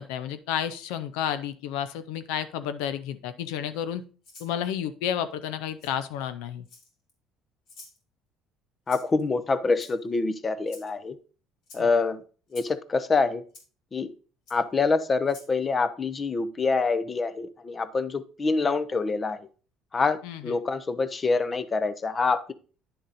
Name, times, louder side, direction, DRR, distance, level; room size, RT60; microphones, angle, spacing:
voice 1, 0.0-4.0 4.4-6.6 11.8-11.9 20.2-20.5, left 9 dB, 90° left, 12 dB, 0.5 m, -31 dB
Rattle (instrument), 4.2-4.5 5.8-5.9 6.6-7.1 7.7-8.0 8.9-9.2 9.7-10.2 10.7-10.9 11.6-11.8 12.5-12.7 13.5-13.6 14.5-14.6 15.2-15.5, left 3 dB, 70° left, 2.9 m, -48 dB
voice 2, 8.9-11.2 11.7-12.2 12.5-13.4 13.9-14.1 14.5-19.5 19.9-22.5, left 4 dB, 25° left, 14 dB, 0.6 m, -26 dB
9.8 x 3.8 x 4.0 m, 0.38 s
cardioid pair, 110°, 0 cm